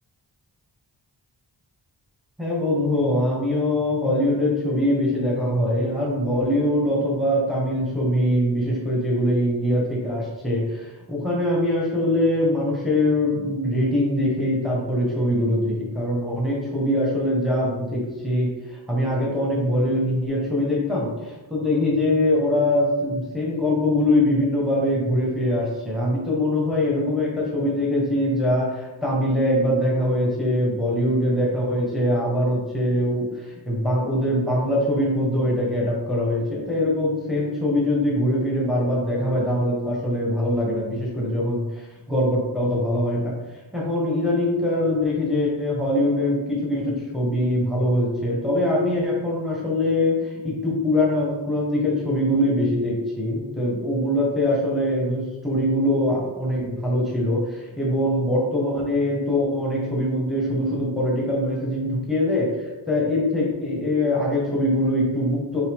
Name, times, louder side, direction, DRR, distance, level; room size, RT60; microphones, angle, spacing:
voice 1, 2.4-43.3 43.7-65.6, left 1 dB, ahead, -4 dB, 1.3 m, -23 dB
4.7 x 2.8 x 3.6 m, 1.1 s
wide cardioid pair, 50°, 46 cm